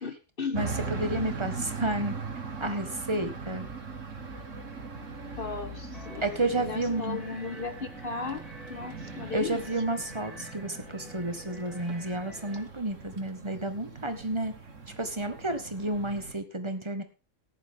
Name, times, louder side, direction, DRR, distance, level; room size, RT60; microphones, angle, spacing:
voice 1, 0.0-0.6 5.4-8.4 8.7-9.6, left 4 dB, 50° left, 9 dB, 1.3 m, -36 dB
voice 2, 0.5-2.2 2.6-3.7 6.2-7.2 9.3-14.5 15.0-17.0, right 2 dB, 20° right, 8 dB, 1.7 m, -31 dB
sound 1, 0.5-16.3, right 4 dB, 80° right, 2.2 m, -40 dB
sound 2, 5.9-12.6, equal, ahead, 3.8 m, -48 dB
14.5 x 11.0 x 3.7 m, 0.31 s
omnidirectional pair, 1.3 m